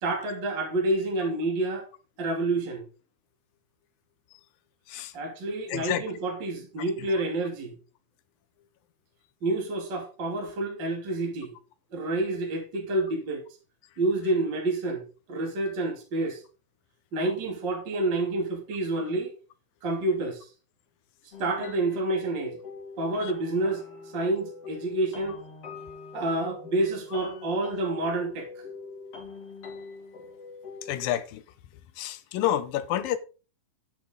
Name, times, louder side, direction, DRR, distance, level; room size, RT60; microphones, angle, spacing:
voice 1, 0.0-1.8 2.2-2.8 5.1-7.7 9.4-11.5 11.9-13.4 14.0-15.0 15.3-16.4 17.1-19.3 19.8-20.5 21.4-22.6 23.0-23.8 24.1-25.4 26.1-28.5, right 2 dB, 35° right, 2.8 m, -28 dB
voice 2, 5.7-6.0 7.0-7.1 23.2-23.3 30.8-31.4 32.0-33.2, left 12 dB, 80° left, 2.5 m, -29 dB
sound 1, 21.3-31.1, left 4 dB, 45° left, 3.3 m, -43 dB
10.5 x 8.9 x 3.8 m
omnidirectional pair, 4.2 m